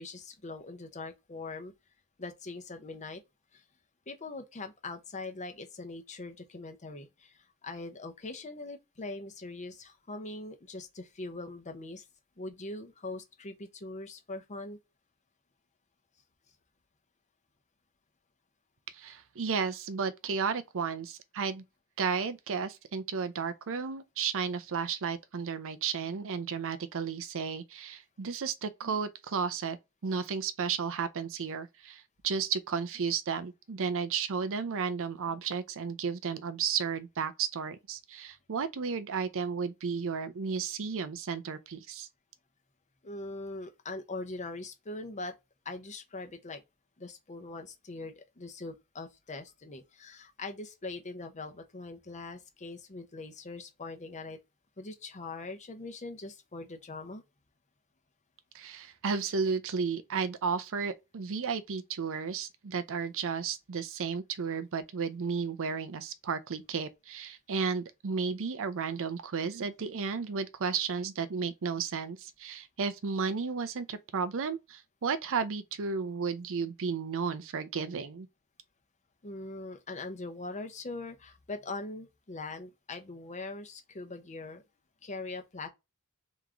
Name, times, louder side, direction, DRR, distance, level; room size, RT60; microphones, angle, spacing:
voice 1, 0.0-1.7 2.2-3.2 3.5-3.6 4.1-7.3 7.6-12.0 12.4-14.8 43.0-45.3 45.6-46.6 47.0-54.4 54.8-57.2 79.2-84.6 85.0-85.7, left 3 dB, 35° left, 0.8 m, -42 dB
voice 2, 18.9-21.6 22.0-29.8 30.0-42.1 58.5-78.3, right 5 dB, 65° right, 0.5 m, -33 dB
3.6 x 3.0 x 3.7 m
head